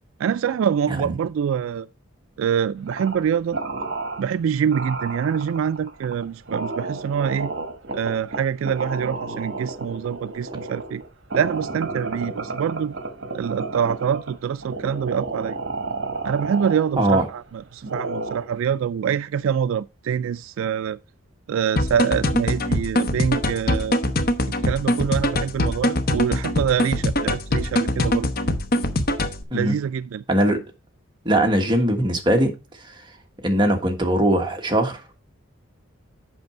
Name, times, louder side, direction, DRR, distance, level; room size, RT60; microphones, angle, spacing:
voice 1, 0.2-1.9 2.4-3.6 4.2-7.5 7.9-11.0 11.3-12.9 13.3-15.6 16.2-21.0 21.5-24.0 24.6-28.3 29.5-30.2, right 8 dB, 75° right, 0.3 m, -25 dB
sound 1, 2.9-3.3 3.5-4.3 4.7-17.4 17.8-18.6, right 3 dB, 60° right, 1.3 m, -32 dB
sound 2, 21.8-29.4, left 1 dB, 45° left, 1.0 m, -23 dB
voice 2, 30.3-30.6 31.2-32.5 33.4-35.0, right 1 dB, 20° right, 1.4 m, -20 dB
7.9 x 6.0 x 4.4 m
head